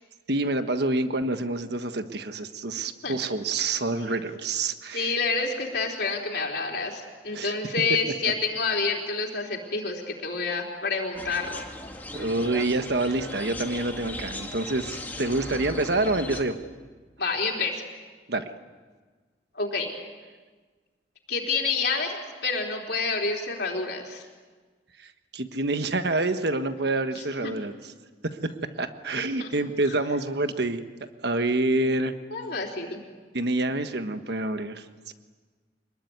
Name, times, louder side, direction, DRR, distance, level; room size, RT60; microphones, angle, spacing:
voice 1, 0.3-5.2 7.3-7.5 12.1-16.6 18.3-18.4 25.3-27.9 28.3-30.8 31.2-32.1 33.3-35.1, right 2 dB, 65° right, 8 dB, 1.4 m, -27 dB
voice 2, 4.9-11.6 17.2-17.8 19.5-19.9 21.3-24.2 27.4-27.5 29.2-29.5 32.3-33.0, left 4 dB, 65° left, -1 dB, 3.9 m, -28 dB
sound 1, 11.1-16.4, left 1 dB, 10° left, 2.4 m, -38 dB
25.5 x 21.5 x 9.6 m, 1.4 s
head